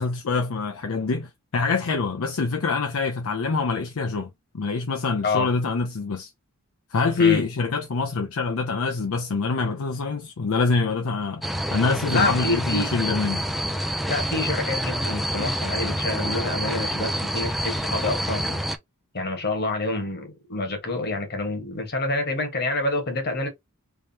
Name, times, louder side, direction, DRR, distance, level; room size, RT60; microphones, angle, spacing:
voice 1, 0.0-4.3 4.5-6.3 6.9-13.4, left 4 dB, 70° left, 0.6 m, -25 dB
sound 1, 11.4-18.8, equal, ahead, 0.3 m, -27 dB
voice 2, 12.1-12.9 14.1-18.6 19.1-23.5, left 2 dB, 50° left, 1.4 m, -27 dB
3.5 x 3.1 x 2.8 m
head